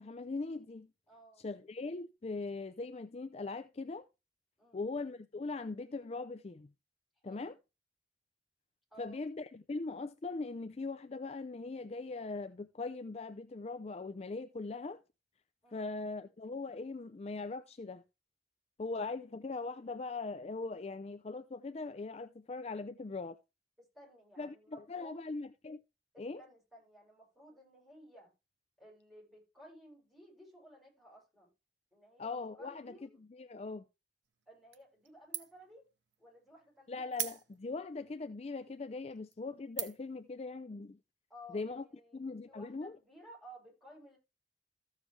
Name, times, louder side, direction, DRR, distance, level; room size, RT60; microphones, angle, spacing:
voice 1, 0.0-0.9 1.4-4.1 4.7-6.7 7.2-7.6 9.0-15.0 15.7-18.0 18.8-23.4 24.4-25.8 26.2-26.4 32.2-32.9 33.3-33.9 36.9-41.0 41.5-41.8 42.1-43.0, left 3 dB, 35° left, 0.4 m, -40 dB
voice 2, 1.1-1.5 4.6-4.9 7.2-7.5 8.9-9.2 15.6-15.9 23.9-25.3 26.1-28.3 28.8-31.5 31.9-33.2 34.4-35.8 36.2-37.2 41.3-44.2, equal, ahead, 6.8 m, -56 dB
sound 1, 34.7-35.1 35.3-35.7 36.1-36.2 37.1-37.8 38.5-38.6 39.1-39.3 39.8-40.2, right 11 dB, 85° right, 1.0 m, -39 dB
14.5 x 7.3 x 3.2 m
head